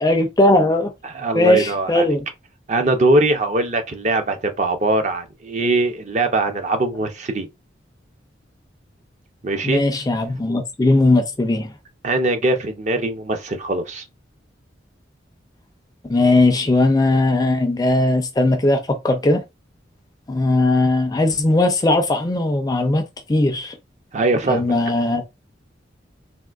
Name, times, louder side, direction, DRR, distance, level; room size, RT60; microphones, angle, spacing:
voice 1, 0.0-0.9 1.4-2.2 9.6-11.7 16.1-19.4 20.3-23.0 23.3-23.7 24.5-25.2, left 2 dB, 20° left, 0.4 m, -18 dB
voice 2, 1.0-2.2 2.7-7.5 9.4-9.8 12.0-14.0 24.1-24.7, right 2 dB, 40° right, 0.5 m, -21 dB
3.6 x 2.5 x 2.3 m
head